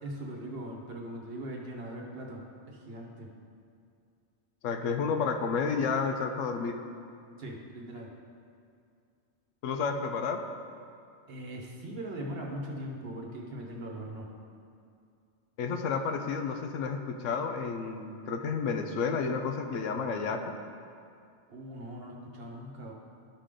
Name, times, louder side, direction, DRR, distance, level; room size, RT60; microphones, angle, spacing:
voice 1, 0.0-3.3 7.4-8.1 11.3-14.3 21.5-22.9, right 1 dB, 50° right, 0 dB, 1.1 m, -40 dB
voice 2, 4.6-6.8 9.6-10.4 15.6-20.5, left 5 dB, 70° left, 5 dB, 0.9 m, -31 dB
12.5 x 5.0 x 3.7 m, 2.4 s
omnidirectional pair, 1.4 m